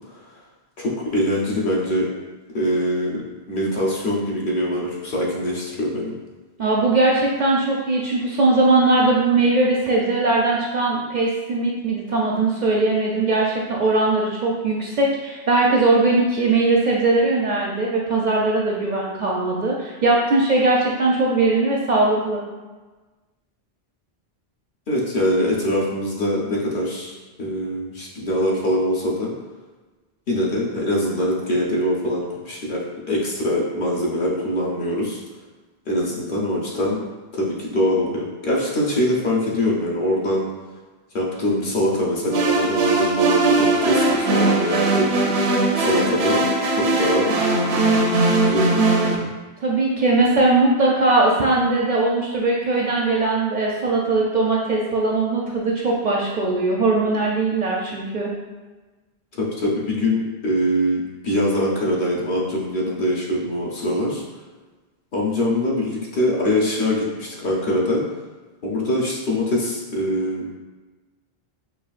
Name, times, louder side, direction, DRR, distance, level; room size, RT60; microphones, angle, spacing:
voice 1, 0.8-2.1 2.5-3.2 3.5-6.1 24.9-29.3 30.3-35.2 35.9-37.0 37.3-40.5 41.1-45.5 45.8-46.4 46.7-47.3 47.7-48.0 48.4-49.3 59.4-64.2 65.1-68.0 68.6-70.5, left 1 dB, 55° left, -5 dB, 0.9 m, -23 dB
voice 2, 6.6-22.4 49.6-58.3, right 2 dB, 55° right, -3 dB, 0.5 m, -20 dB
sound 1, 42.3-49.2, right 2 dB, 90° right, 0.9 m, -20 dB
5.5 x 2.4 x 2.4 m, 1.3 s
omnidirectional pair, 1.1 m